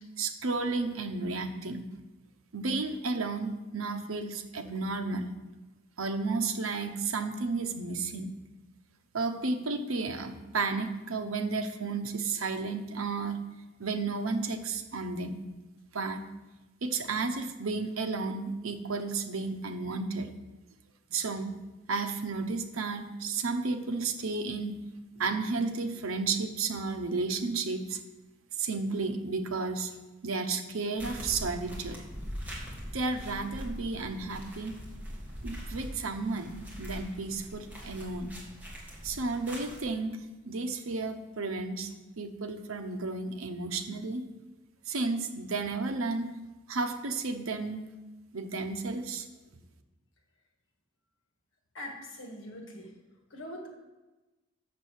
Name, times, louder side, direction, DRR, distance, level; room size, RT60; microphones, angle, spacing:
voice 1, 0.2-1.9 2.5-5.3 6.0-8.3 9.1-13.4 13.8-15.4 15.9-16.3 16.8-20.3 21.1-21.6 21.9-24.7 25.2-28.0 28.6-29.9 30.2-32.0 32.9-34.8 35.4-38.3 39.0-40.2 40.4-41.9 42.2-44.2 44.9-46.3 46.7-47.9 48.3-49.3, right 3 dB, 85° right, 7 dB, 0.9 m, -32 dB
sound 1, 31.0-39.9, equal, 10° right, 1.8 m, -42 dB
voice 2, 51.7-52.9 53.3-53.7, left 1 dB, 70° left, 1 dB, 1.8 m, -42 dB
7.4 x 6.7 x 6.4 m, 1.1 s
head